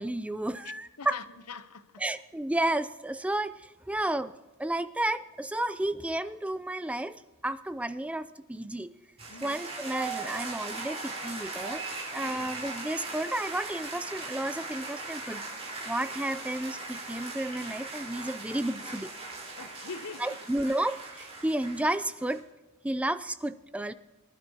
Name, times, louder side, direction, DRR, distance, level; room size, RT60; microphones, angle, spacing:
voice 1, 0.0-1.2 2.0-4.3 4.6-8.9 9.4-11.8 12.1-15.4 15.9-19.1 20.2-22.4 22.8-23.9, right 1 dB, 5° right, 0.3 m, -32 dB
voice 2, 1.0-2.0 9.3-9.6 12.1-12.5 19.6-20.4, left 5 dB, 90° left, 0.8 m, -43 dB
sound 1, 9.2-22.4, right 3 dB, 30° right, 4.2 m, -39 dB
23.0 x 11.5 x 2.8 m
head